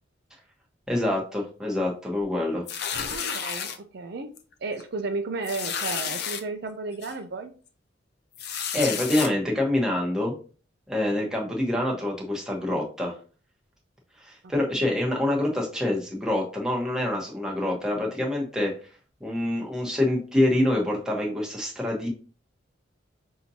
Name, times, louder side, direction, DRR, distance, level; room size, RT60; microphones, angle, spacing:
voice 1, 0.9-2.6 8.5-10.3 10.9-13.1 14.2-18.7 19.2-22.1, left 1 dB, 5° right, 1.1 m, -26 dB
sound 1, 2.7-3.8 4.4-4.5 4.8-4.9 5.4-6.4 7.0-7.1 8.4-9.3, left 7 dB, 55° left, 0.5 m, -31 dB
voice 2, 2.9-4.3 4.6-7.5 14.8-14.9, right 3 dB, 55° right, 0.5 m, -33 dB
6.0 x 2.7 x 2.8 m
head